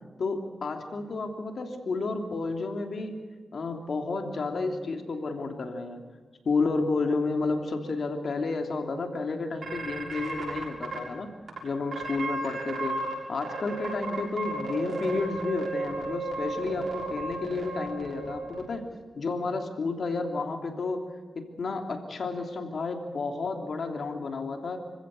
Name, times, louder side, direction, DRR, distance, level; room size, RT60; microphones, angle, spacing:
voice 1, 0.2-3.2 3.5-6.0 6.4-11.3 11.6-13.0 13.3-18.9 19.2-21.0 21.3-24.8, left 3 dB, 70° left, 4 dB, 3.1 m, -31 dB
sound 1, 9.6-11.0 11.5-11.6 11.9-13.1 13.4-18.6, right 3 dB, 65° right, 6.8 m, -34 dB
26.0 x 15.5 x 8.4 m, 1.4 s
cardioid pair, 60°, 0 cm